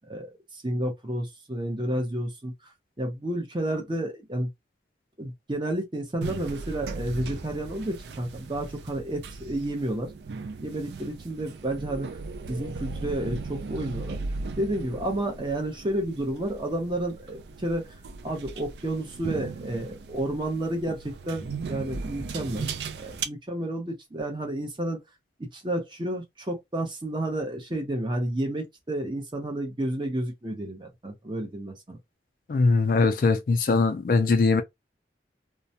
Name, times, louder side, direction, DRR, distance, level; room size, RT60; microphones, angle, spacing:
voice 1, 0.5-2.5 3.0-4.5 5.2-10.1 10.6-12.1 12.5-14.2 14.6-17.9 18.2-22.7 22.9-25.0 25.4-32.0, right 1 dB, 25° right, 0.7 m, -31 dB
sound 1, 6.2-23.2, right 4 dB, 70° right, 0.4 m, -37 dB
voice 2, 32.5-34.6, left 4 dB, 50° left, 0.3 m, -21 dB
2.2 x 2.1 x 2.7 m
head